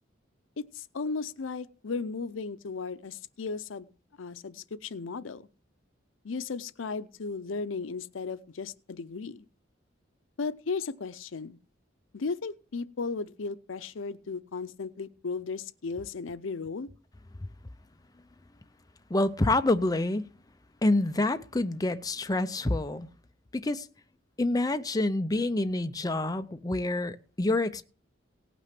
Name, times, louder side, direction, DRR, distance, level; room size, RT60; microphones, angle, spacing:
voice 1, 0.7-3.9 4.2-5.5 6.2-9.5 10.4-11.6 12.1-16.9, left 4 dB, 85° left, 0.6 m, -35 dB
voice 2, 19.1-20.3 20.8-23.1 23.5-23.9 24.4-27.8, left 2 dB, 20° left, 0.6 m, -27 dB
18.0 x 6.1 x 6.0 m
head